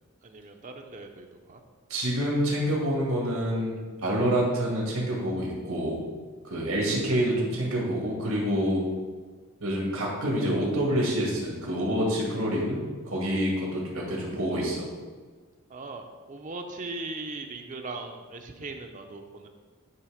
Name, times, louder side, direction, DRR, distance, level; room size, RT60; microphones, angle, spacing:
voice 1, 0.2-1.6 15.7-19.5, right 3 dB, 35° right, 4 dB, 0.6 m, -39 dB
voice 2, 1.9-6.0 6.4-8.8 9.6-12.8 13.1-14.9, equal, 90° right, -3 dB, 2.0 m, -27 dB
9.5 x 3.4 x 4.9 m, 1.5 s
head